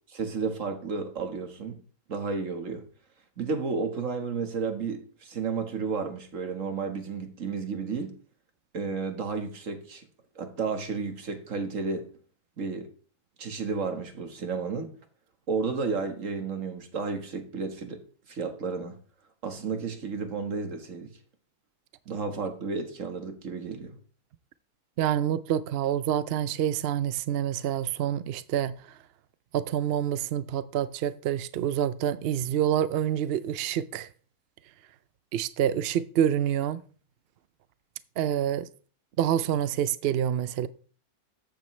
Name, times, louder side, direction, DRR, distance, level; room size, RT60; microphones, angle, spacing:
voice 1, 0.1-1.8 2.1-2.8 3.4-8.1 8.7-10.1 10.4-12.1 12.6-12.9 13.4-14.9 15.5-18.0 18.3-19.0 19.4-21.1 22.1-23.9, right 4 dB, 55° right, 1.8 m, -32 dB
voice 2, 25.0-28.7 29.5-34.1 35.3-36.8 38.2-38.7 39.2-40.7, right 10 dB, 75° right, 0.5 m, -27 dB
13.5 x 9.1 x 3.2 m
omnidirectional pair, 1.7 m